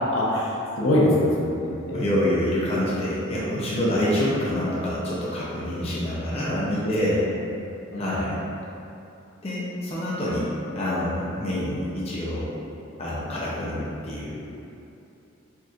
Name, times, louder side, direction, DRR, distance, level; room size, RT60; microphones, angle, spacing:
voice 1, 0.1-2.1 3.7-3.9 5.9-6.0 6.8-6.9 7.9-8.2, left 1 dB, 75° left, -5 dB, 0.8 m, -24 dB
voice 2, 1.9-7.3 8.0-8.4 9.4-10.5 10.7-12.6 13.0-14.6, left 1 dB, 30° left, -7 dB, 0.5 m, -27 dB
4.5 x 2.9 x 2.4 m, 2.8 s
head